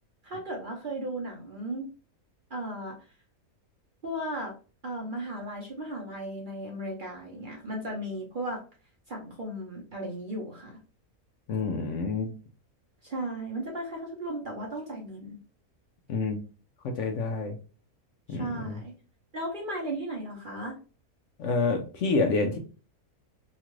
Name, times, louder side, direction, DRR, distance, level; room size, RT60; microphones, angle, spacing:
voice 1, 0.2-1.9 2.5-3.0 4.0-4.5 4.8-8.6 9.1-10.8 13.0-15.4 18.3-18.9 19.3-20.8, right 1 dB, 45° right, -2 dB, 0.7 m, -35 dB
voice 2, 11.5-12.3 16.1-16.4 16.8-17.6 18.3-18.8 21.4-22.6, left 3 dB, 65° left, 3 dB, 0.8 m, -28 dB
2.9 x 2.4 x 3.0 m, 0.36 s
omnidirectional pair, 1.5 m